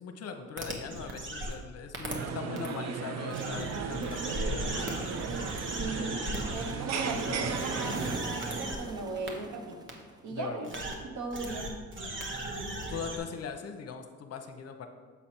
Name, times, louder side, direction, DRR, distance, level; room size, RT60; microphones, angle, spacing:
voice 1, 0.0-5.0 5.8-6.6 10.3-10.7 12.9-14.9, left 6 dB, 55° left, 6 dB, 0.7 m, -40 dB
sound 1, 0.6-1.5 1.9-2.1 2.6-2.7 3.3-8.8 9.3-9.4 9.9-10.0 10.6-10.9 11.3-13.2, right 1 dB, 40° right, 1.2 m, -36 dB
sound 2, 2.1-8.2, right 6 dB, 60° right, 0.5 m, -36 dB
voice 2, 5.8-6.2 6.5-9.8 10.2-10.7 11.0-11.7, right 3 dB, 80° right, 3 dB, 1.1 m, -37 dB
sound 3, 6.4-10.6, right 2 dB, 15° right, 0.5 m, -44 dB
7.1 x 4.3 x 4.4 m, 1.5 s
cardioid pair, 90°, 30 cm